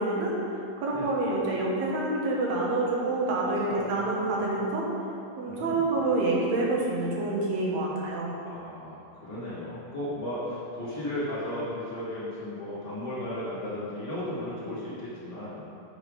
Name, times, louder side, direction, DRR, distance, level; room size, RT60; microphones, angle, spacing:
voice 1, 0.0-4.9 5.4-8.3, right 2 dB, 65° right, -3 dB, 2.4 m, -27 dB
voice 2, 3.7-4.4 5.4-5.9 8.4-15.6, left 1 dB, 15° left, -12 dB, 1.6 m, -35 dB
8.2 x 5.5 x 5.1 m, 2.6 s
omnidirectional pair, 3.4 m